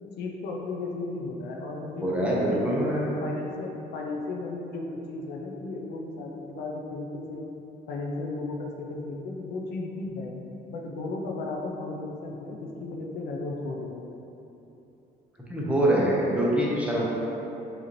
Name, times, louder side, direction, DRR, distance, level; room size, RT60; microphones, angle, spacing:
voice 1, 0.2-2.7 3.0-7.4 7.9-10.3 10.7-14.1, left 3 dB, 75° left, 0 dB, 0.5 m, -35 dB
voice 2, 2.0-3.1 15.5-17.0, right 1 dB, 5° right, -6 dB, 0.9 m, -24 dB
4.9 x 2.8 x 3.0 m, 3.0 s
cardioid pair, 110°, 17 cm